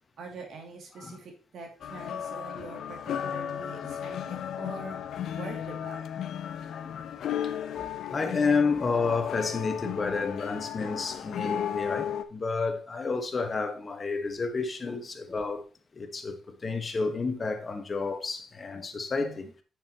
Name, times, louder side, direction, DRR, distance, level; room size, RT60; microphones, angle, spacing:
voice 1, 0.2-5.0 5.3-6.0 19.2-19.5, right 3 dB, 65° right, 2.6 m, -44 dB
sound 1, 1.8-12.2, left 9 dB, 70° left, 0.6 m, -35 dB
voice 2, 7.6-15.6 15.9-19.5, left 4 dB, 35° left, 1.4 m, -30 dB
8.9 x 6.7 x 3.0 m
cardioid pair, 90°, 0 cm